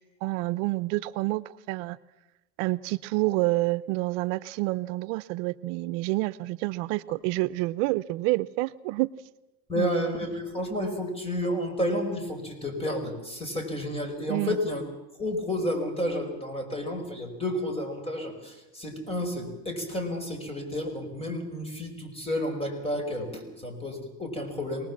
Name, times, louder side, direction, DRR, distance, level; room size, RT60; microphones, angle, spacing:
voice 1, 0.2-2.0 2.6-9.1 9.8-10.1 14.3-14.6, right 20 dB, 80° right, 16 dB, 0.7 m, -28 dB
voice 2, 9.7-14.8 15.2-24.9, left 1 dB, 15° left, 4 dB, 5.2 m, -31 dB
24.0 x 19.5 x 7.4 m, 1.0 s
cardioid pair, 130°, 37 cm